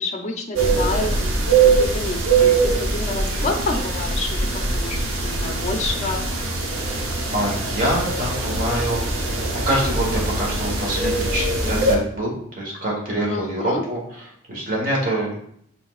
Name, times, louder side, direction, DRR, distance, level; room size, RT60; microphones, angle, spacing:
voice 1, 0.0-6.3 13.3-13.8, left 2 dB, 35° left, 3 dB, 0.6 m, -29 dB
sound 1, 0.6-12.0, right 3 dB, 80° right, 0.8 m, -22 dB
voice 2, 7.3-9.3 9.6-14.0 14.5-15.4, right 1 dB, 40° right, -3 dB, 1.3 m, -25 dB
5.9 x 3.7 x 2.4 m, 0.68 s
head